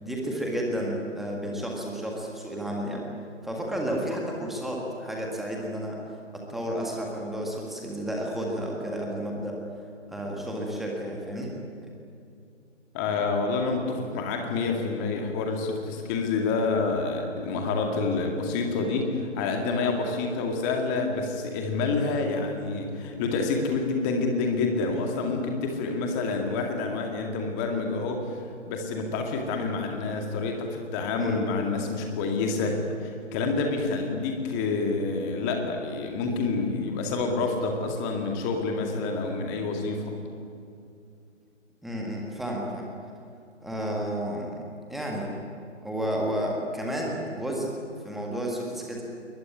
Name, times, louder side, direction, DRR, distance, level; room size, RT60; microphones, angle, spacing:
voice 1, 0.0-3.1 3.4-6.0 6.3-9.6 10.1-11.5 11.8-11.9 31.2-31.4 41.8-42.8 43.6-44.6 44.9-45.4 45.8-47.7 48.0-49.0, equal, ahead, -1 dB, 1.7 m, -31 dB
voice 2, 12.9-28.4 28.7-40.1, left 3 dB, 15° left, 3 dB, 2.2 m, -28 dB
21.5 x 20.5 x 9.8 m, 2.4 s
figure-of-eight pair, 150°, 37 cm